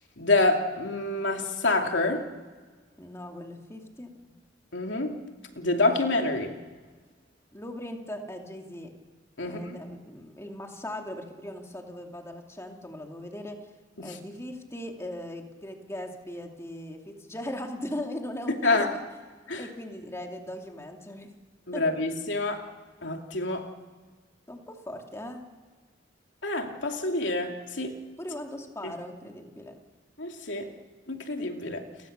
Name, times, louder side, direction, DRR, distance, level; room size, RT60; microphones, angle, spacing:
voice 1, 0.2-2.3 4.7-5.2 5.6-6.5 9.4-9.8 14.0-14.1 18.6-18.9 19.5-19.6 21.7-22.6 23.0-23.7 26.4-28.0 28.8-28.9 30.2-30.7 31.1-31.8, left 2 dB, 85° left, 3 dB, 2.9 m, -27 dB
voice 2, 3.0-4.3 7.5-8.9 9.4-13.6 14.0-19.1 19.6-21.3 21.7-21.8 24.5-25.4 28.2-29.7, left 1 dB, 15° left, 2 dB, 2.7 m, -39 dB
30.0 x 25.0 x 6.8 m, 1.5 s
head